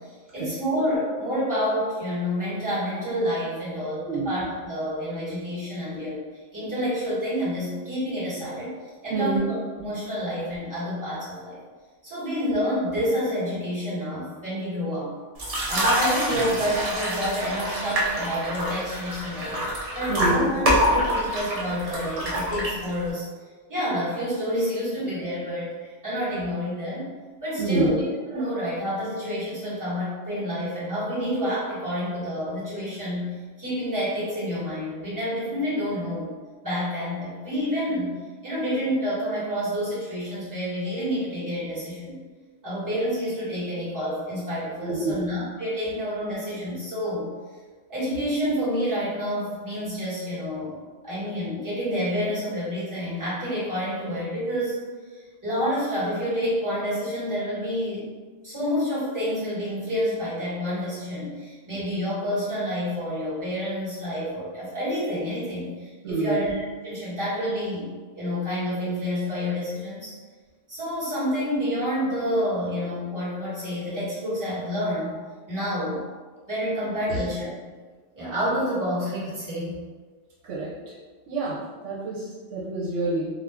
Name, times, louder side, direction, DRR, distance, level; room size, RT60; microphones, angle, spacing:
voice 1, 0.0-6.2 6.5-8.7 9.0-9.4 9.8-11.6 12.0-15.1 15.7-19.6 19.9-23.2 23.7-27.1 27.4-27.9 28.3-36.3 36.6-38.1 38.4-42.1 42.6-47.3 47.9-50.8 51.0-54.8 55.1-58.1 58.4-70.1 70.7-75.2 75.5-76.0 76.5-77.7 78.1-79.8, equal, 15° right, -11 dB, 1.3 m, -28 dB
sound 1, 15.4-23.1, equal, 45° right, 0.5 m, -26 dB
voice 2, 20.1-20.5 27.6-27.9 44.8-45.2 66.0-66.4 77.1-77.2 80.4-80.9 81.3-81.6 81.8-83.3, right 2 dB, 80° right, -6 dB, 1.0 m, -27 dB
2.6 x 2.3 x 3.4 m, 1.4 s
omnidirectional pair, 1.2 m